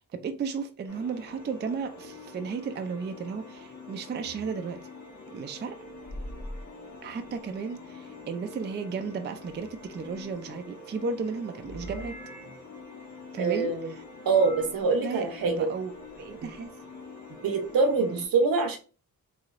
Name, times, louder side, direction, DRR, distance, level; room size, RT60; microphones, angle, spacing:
voice 1, 0.0-4.8 5.3-5.7 7.0-12.2 13.3-13.7 15.0-16.7 18.0-18.2, right 5 dB, 30° right, 7 dB, 0.4 m, -34 dB
sound 1, 0.9-18.2, left 3 dB, 55° left, 1.3 m, -46 dB
sound 2, 4.2-4.5 5.9-7.5 9.4-10.6 11.6-12.7 14.2-14.8 15.8-16.7, equal, 20° left, 1.2 m, -45 dB
voice 2, 13.4-13.9 14.2-15.7 17.4-18.8, right 4 dB, 75° right, 5 dB, 0.8 m, -25 dB
3.0 x 2.7 x 2.4 m, 0.37 s
cardioid pair, 75°, 35 cm